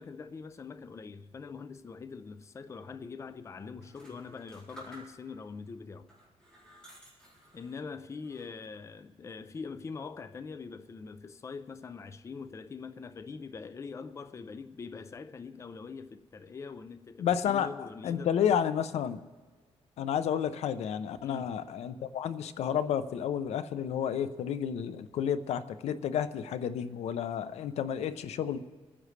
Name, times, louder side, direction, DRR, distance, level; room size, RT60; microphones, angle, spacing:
voice 1, 0.0-6.1 7.5-18.3 21.2-21.6, left 5 dB, 25° left, 0.5 m, -43 dB
sound 1, 3.7-5.5 6.0-7.8 8.2-8.9, right 1 dB, 5° left, 4.2 m, -54 dB
voice 2, 17.2-19.2 20.0-28.6, left 8 dB, 80° left, 0.6 m, -31 dB
27.0 x 10.0 x 3.2 m
cardioid pair, 130°, 11 cm